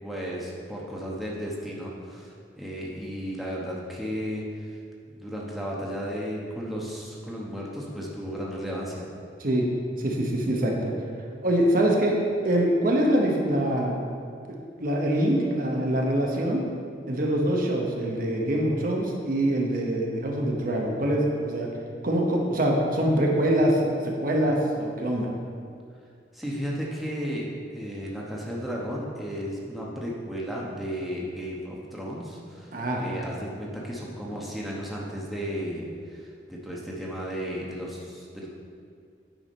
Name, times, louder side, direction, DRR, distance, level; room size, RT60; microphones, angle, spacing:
voice 1, 0.0-4.8 5.1-9.0 26.3-38.5, equal, ahead, -4 dB, 1.0 m, -34 dB
voice 2, 10.0-10.9 11.4-12.2 12.4-13.9 14.5-16.6 17.1-21.7 22.0-25.3 32.7-33.0, right 1 dB, 50° right, -1 dB, 1.1 m, -24 dB
9.0 x 4.8 x 5.3 m, 2.3 s
head